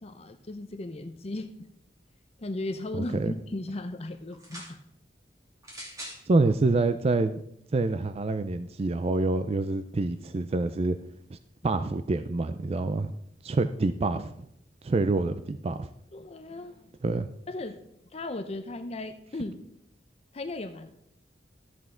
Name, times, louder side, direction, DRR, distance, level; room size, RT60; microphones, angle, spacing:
voice 1, 0.0-1.7 2.4-4.8 16.1-16.9 17.5-17.8 18.1-19.6 20.3-21.0, left 2 dB, 35° left, 8 dB, 0.6 m, -36 dB
voice 2, 3.0-3.3 6.3-7.4 7.7-11.0 11.3-11.4 11.6-13.1 13.4-14.5 14.8-15.9 17.0-17.3, right 3 dB, 35° right, 11 dB, 0.4 m, -26 dB
sound 1, 4.3-4.8 5.6-6.2 7.1-7.2, equal, 20° right, 2.4 m, -42 dB
13.0 x 8.1 x 3.7 m, 0.75 s
head